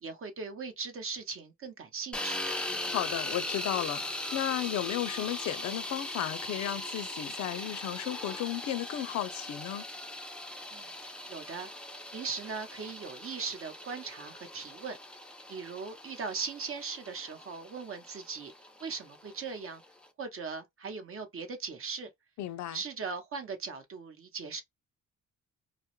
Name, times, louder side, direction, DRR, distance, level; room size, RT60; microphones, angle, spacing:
voice 1, 0.0-2.4 10.7-10.9 11.3-11.7 12.1-15.0 15.5-18.5 18.8-19.8 20.2-22.1 22.7-24.6, right 5 dB, 45° right, 0.8 m, -39 dB
sound 1, 2.1-20.1, left 1 dB, 5° left, 0.4 m, -40 dB
voice 2, 2.7-9.8 22.4-22.8, left 12 dB, 65° left, 0.4 m, -34 dB
2.3 x 2.0 x 2.8 m
cardioid pair, 90°, 30 cm